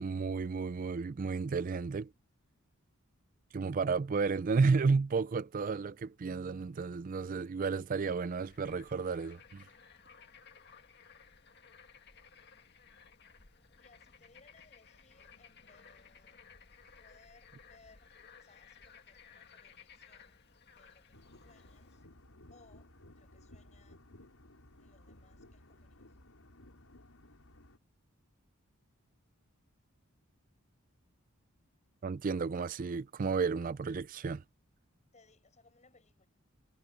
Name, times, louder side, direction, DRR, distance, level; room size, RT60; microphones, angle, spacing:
voice 1, 0.0-2.1 3.5-9.7 32.0-34.4, right 4 dB, 40° right, 0.4 m, -32 dB
Bird / Frog, 8.3-22.1, left 6 dB, 50° left, 1.9 m, -58 dB
voice 2, 13.7-16.4 17.0-18.1 18.4-22.0 22.5-24.0 24.8-26.2 35.1-36.3, left 3 dB, 35° left, 7.8 m, -65 dB
sound 1, 21.1-27.8, left 1 dB, 80° left, 5.2 m, -58 dB
head